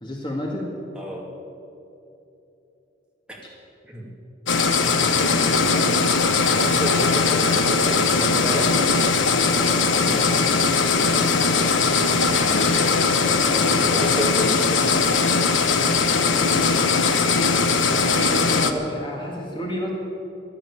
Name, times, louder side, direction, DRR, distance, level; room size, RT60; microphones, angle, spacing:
voice 1, 0.0-0.7 4.6-5.9 6.6-6.8 18.1-19.9, equal, 25° left, -1 dB, 1.9 m, -32 dB
voice 2, 0.9-1.3 3.3-3.4 3.9-4.1 4.6-5.0 6.2-9.1 9.9-10.8 12.3-13.5 13.8-14.6 14.9-15.0, equal, 5° right, -3 dB, 2.5 m, -32 dB
sound 1, 4.5-18.7, left 4 dB, 85° left, 1.1 m, -20 dB
14.0 x 11.5 x 8.5 m, 2.9 s
head